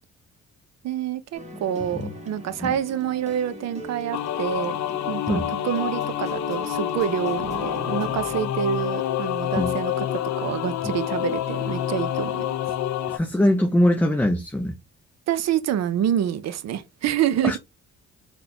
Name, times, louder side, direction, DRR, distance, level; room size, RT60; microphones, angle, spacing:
voice 1, 0.8-4.8 5.1-12.5 15.3-17.6, right 10 dB, 60° right, 0.5 m, -27 dB
sound 1, 1.3-8.4, right 1 dB, 20° right, 1.2 m, -40 dB
sound 2, 4.1-13.2, left 11 dB, 70° left, 0.5 m, -27 dB
voice 2, 13.1-14.8 17.4-17.6, left 1 dB, 5° left, 0.4 m, -22 dB
3.9 x 2.2 x 2.8 m
cardioid pair, 90°, 30 cm